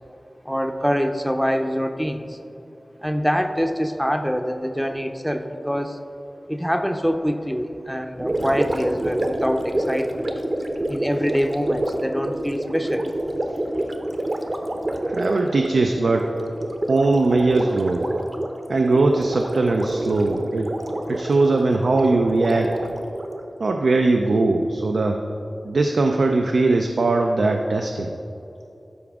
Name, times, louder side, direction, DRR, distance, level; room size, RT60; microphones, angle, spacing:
voice 1, 0.4-2.4 3.0-6.0 6.5-10.3 10.9-13.1, equal, ahead, 6 dB, 0.5 m, -25 dB
Gurgling, 8.2-23.4, right 1 dB, 45° right, 0.8 m, -28 dB
voice 2, 15.1-16.3 16.9-18.0 18.7-20.7 21.1-22.8 23.6-25.2 25.6-28.1, right 3 dB, 85° right, 3 dB, 0.4 m, -20 dB
12.0 x 4.8 x 3.5 m, 2.8 s
wide cardioid pair, 55°, 0 cm